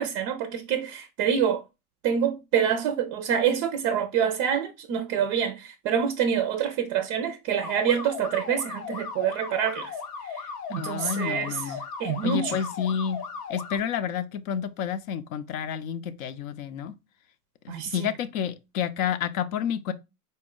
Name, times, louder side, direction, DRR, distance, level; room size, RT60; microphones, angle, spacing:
voice 1, 0.0-1.6 2.0-9.9 10.3-11.7 12.0-12.6 17.7-17.9, right 8 dB, 35° right, 0.4 m, -26 dB
sound 1, 7.6-13.8, left 5 dB, 85° left, 0.9 m, -37 dB
voice 2, 10.8-11.8 12.2-13.2 13.5-16.9 17.6-19.9, left 8 dB, 60° left, 0.6 m, -30 dB
4.2 x 2.2 x 3.6 m
hypercardioid pair, 110°, 45 cm